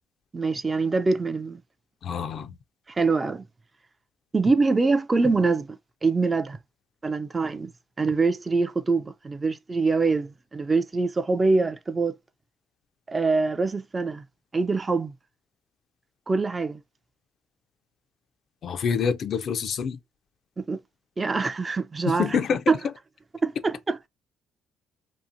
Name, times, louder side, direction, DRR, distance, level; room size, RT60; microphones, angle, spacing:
voice 1, 0.3-1.6 2.9-3.4 4.3-5.7 6.0-6.6 7.0-7.7 8.0-12.1 13.1-14.2 14.5-15.1 16.3-16.8 20.6-20.8 21.2-22.4 22.7-22.8 23.4-24.1, right 3 dB, 25° right, 0.3 m, -24 dB
voice 2, 2.0-2.5 18.6-20.0 22.1-22.6, left 6 dB, 55° left, 0.4 m, -26 dB
2.8 x 2.4 x 2.5 m
cardioid pair, 90°, 0 cm